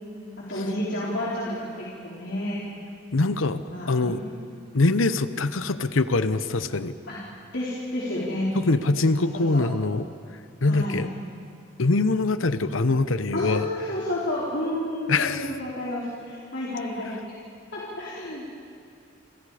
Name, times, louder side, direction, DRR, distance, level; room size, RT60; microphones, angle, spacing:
voice 1, 0.4-2.6 3.2-4.3 7.1-7.2 7.5-8.5 9.1-9.2 9.5-9.7 10.7-11.1 13.3-17.4 17.7-18.5, left 1 dB, 65° left, -7 dB, 4.3 m, -31 dB
voice 2, 3.1-3.6 3.9-4.2 4.7-6.9 8.5-10.1 10.6-11.1 11.8-13.7 15.1-15.5, left 3 dB, 85° left, 12 dB, 0.9 m, -23 dB
29.5 x 27.5 x 5.0 m, 2.3 s
head